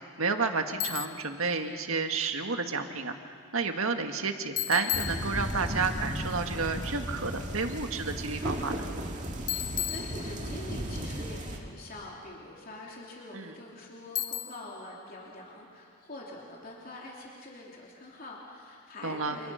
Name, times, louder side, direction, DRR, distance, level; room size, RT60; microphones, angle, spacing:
voice 1, 0.2-8.9 13.3-13.5 19.0-19.4, right 4 dB, 70° right, 6 dB, 1.8 m, -31 dB
Bicycle, 0.8-1.3 4.6-5.8 9.5-10.7 14.2-14.8, left 14 dB, 80° left, 1.2 m, -34 dB
sound 1, 4.9-11.6, right 1 dB, 35° right, 2.2 m, -35 dB
voice 2, 9.6-19.5, left 1 dB, 40° left, -3 dB, 3.2 m, -45 dB
29.0 x 28.0 x 5.8 m, 2.3 s
head